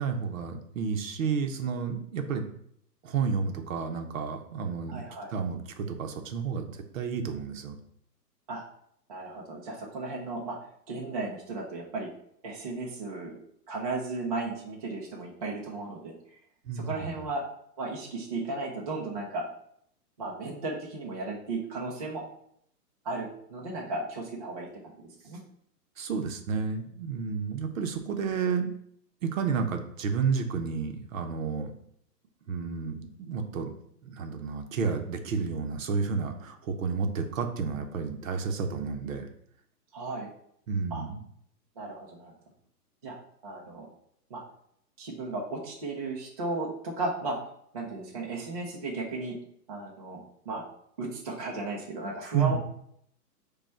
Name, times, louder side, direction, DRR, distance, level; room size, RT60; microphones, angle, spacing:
voice 1, 0.0-2.5 3.0-5.0 5.3-7.8 16.7-17.2 26.0-28.7 29.2-31.7 32.5-33.7 34.0-39.3 40.7-41.2 52.3-52.6, right 5 dB, 55° right, 5 dB, 0.8 m, -31 dB
voice 2, 4.9-5.3 8.5-8.6 9.1-10.6 10.9-12.1 12.4-13.4 13.7-16.1 16.7-17.4 17.8-19.5 20.2-22.2 23.0-25.4 39.9-40.3 40.9-41.0 41.8-42.3 43.0-43.2 43.4-43.9 44.3-44.4 45.0-47.4 47.7-49.4 49.7-50.2 50.5-50.6 51.0-52.6, right 3 dB, 25° right, -3 dB, 0.4 m, -35 dB
5.1 x 2.3 x 4.4 m, 0.68 s
hypercardioid pair, 145°, 50 cm